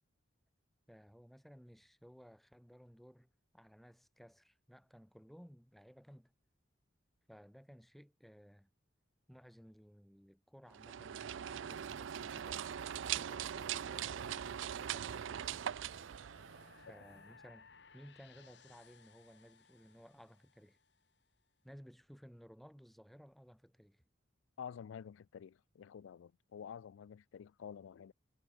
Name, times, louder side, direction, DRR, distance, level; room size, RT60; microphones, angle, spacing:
voice 1, 0.9-6.3 7.3-8.7 9.3-12.7 13.1-15.7 16.7-20.8 21.6-24.0, equal, ahead, 2.7 m, -58 dB
sound 1, 10.7-16.9, right 9 dB, 70° right, 0.4 m, -41 dB
sound 2, 11.6-17.5, right 3 dB, 55° right, 1.7 m, -58 dB
sound 3, 13.0-21.1, left 5 dB, 60° left, 1.5 m, -64 dB
voice 2, 24.6-28.1, left 7 dB, 80° left, 0.3 m, -49 dB
head